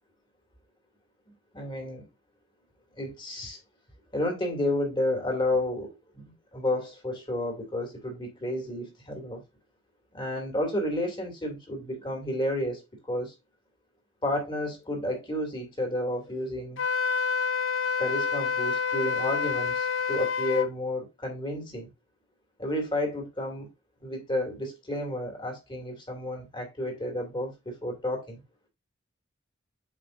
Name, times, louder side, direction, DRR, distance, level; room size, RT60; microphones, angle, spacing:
voice 1, 1.5-2.0 3.0-3.6 4.1-9.4 10.1-13.3 14.2-16.8 18.0-21.9 22.6-23.7 24.0-28.4, left 1 dB, 25° left, 2.4 m, -31 dB
Wind instrument woodwind instrument, 16.8-20.7, left 6 dB, 70° left, 0.6 m, -28 dB
7.6 x 5.0 x 2.5 m
head